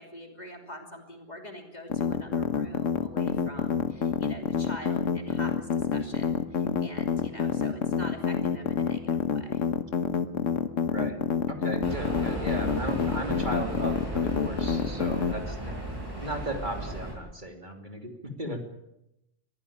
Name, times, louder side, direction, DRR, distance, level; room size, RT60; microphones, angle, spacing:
voice 1, 0.0-9.6 15.5-15.8, equal, 35° left, 3 dB, 3.2 m, -44 dB
sound 1, 1.9-15.3, left 6 dB, 85° left, 1.5 m, -27 dB
voice 2, 10.9-11.2 11.5-15.7 16.2-18.6, right 1 dB, 40° right, 3 dB, 3.1 m, -36 dB
sound 2, 11.8-17.1, right 1 dB, 20° right, 8.2 m, -35 dB
22.5 x 15.0 x 8.8 m, 0.86 s
omnidirectional pair, 1.3 m